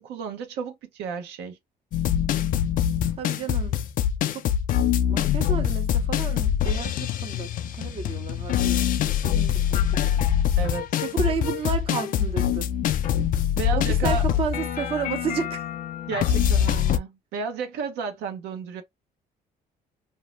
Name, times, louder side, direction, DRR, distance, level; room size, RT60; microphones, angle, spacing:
voice 1, 0.0-1.6 10.6-10.8 13.6-14.2 16.1-18.8, right 6 dB, 85° right, 0.8 m, -32 dB
sound 1, 1.9-17.0, left 10 dB, 55° left, 0.4 m, -24 dB
voice 2, 3.2-3.8 4.3-4.5 5.1-7.5 7.8-10.3 11.0-12.7 13.7-15.7, right 6 dB, 35° right, 0.5 m, -32 dB
2.7 x 2.0 x 3.1 m
cardioid pair, 110°, 17 cm